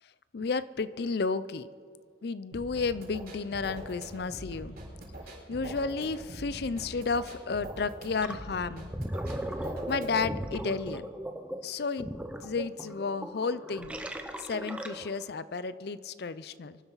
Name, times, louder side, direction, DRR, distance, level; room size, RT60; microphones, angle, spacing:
voice 1, 0.3-1.7 2.2-4.8 5.3-8.9 9.6-11.0 11.6-12.1 12.4-14.0 14.4-16.8, left 4 dB, 60° left, 15 dB, 0.5 m, -32 dB
sound 1, 2.5-10.5, right 1 dB, 55° right, 4.9 m, -43 dB
Gurgling, 8.2-8.4 8.8-15.3, right 1 dB, 5° right, 0.8 m, -37 dB
24.5 x 12.0 x 4.0 m, 2.2 s
head